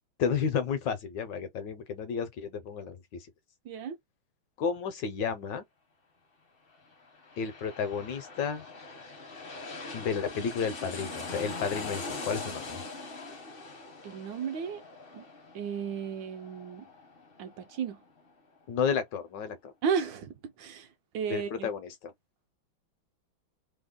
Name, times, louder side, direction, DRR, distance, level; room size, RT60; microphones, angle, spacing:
voice 1, 0.2-3.3 4.6-5.6 7.4-8.6 9.9-12.8 18.7-19.7 21.3-22.1, left 6 dB, 70° left, 1.2 m, -32 dB
voice 2, 3.6-4.0 14.0-14.8 15.1-15.2 15.5-16.9 17.4-18.0 19.8-20.9 21.1-21.7, right 7 dB, 75° right, 1.2 m, -34 dB
sound 1, 6.9-18.3 18.6-18.7, left 3 dB, 50° left, 0.6 m, -42 dB
3.4 x 2.0 x 3.6 m
omnidirectional pair, 2.3 m